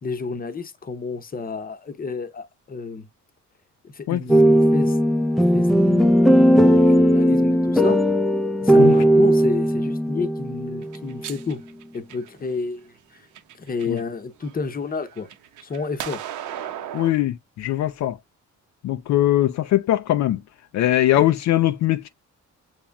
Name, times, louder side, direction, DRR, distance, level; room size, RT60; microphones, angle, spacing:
voice 1, 0.0-3.1 3.8-5.0 5.3-6.2 6.5-8.2 8.6-11.6 11.9-13.3 13.6-15.3 15.6-16.2, left 4 dB, 30° left, 0.8 m, -31 dB
sound 1, 4.3-11.2, equal, ahead, 0.4 m, -17 dB
sound 2, 10.8-12.6 13.2-14.0 14.4-17.1, right 11 dB, 85° right, 0.8 m, -36 dB
voice 2, 16.9-18.2 18.8-20.4 20.7-22.1, left 13 dB, 65° left, 0.4 m, -21 dB
7.1 x 3.0 x 2.2 m
cardioid pair, 90°, 30 cm